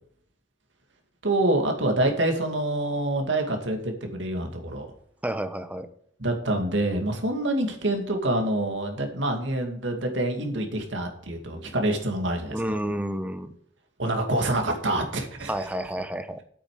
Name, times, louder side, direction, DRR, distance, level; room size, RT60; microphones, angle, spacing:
voice 1, 1.2-4.9 6.2-12.6 14.0-15.5, right 1 dB, 70° right, 3 dB, 2.3 m, -26 dB
voice 2, 5.2-5.9 12.5-13.5 15.5-16.4, right 1 dB, 10° right, 9 dB, 0.9 m, -30 dB
9.1 x 8.6 x 4.9 m, 0.65 s
head